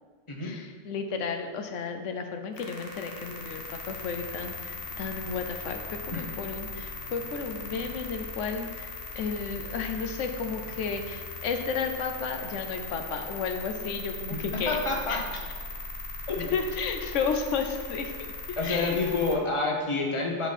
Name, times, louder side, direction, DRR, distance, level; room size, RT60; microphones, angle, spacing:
voice 1, 0.4-14.8 15.1-15.2 16.5-19.0, left 5 dB, 80° left, 6 dB, 1.0 m, -33 dB
sound 1, 2.5-19.4, left 3 dB, 50° left, 1.2 m, -39 dB
voice 2, 14.3-15.2 16.3-16.4 18.6-20.5, left 3 dB, 25° left, 0 dB, 0.9 m, -28 dB
7.9 x 4.6 x 4.1 m, 1.5 s
omnidirectional pair, 1.3 m